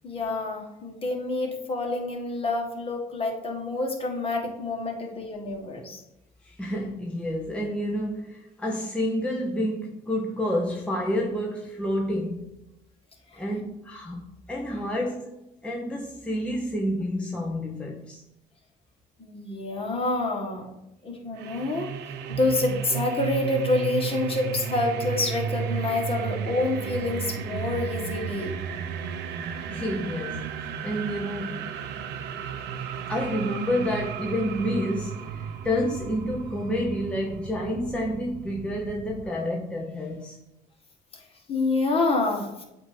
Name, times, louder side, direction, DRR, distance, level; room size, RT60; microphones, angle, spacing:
voice 1, 0.0-6.0 19.2-20.7 21.0-21.9 22.3-28.5 41.1-41.2 41.5-42.6, left 2 dB, 35° left, 1.6 m, -27 dB
voice 2, 6.4-12.5 13.4-15.3 15.6-18.2 29.7-30.5 30.8-31.8 33.1-40.4, equal, 5° left, 0.8 m, -29 dB
sound 1, 21.4-39.3, right 7 dB, 85° right, 0.6 m, -34 dB
8.2 x 2.8 x 5.0 m
cardioid pair, 110°, 17 cm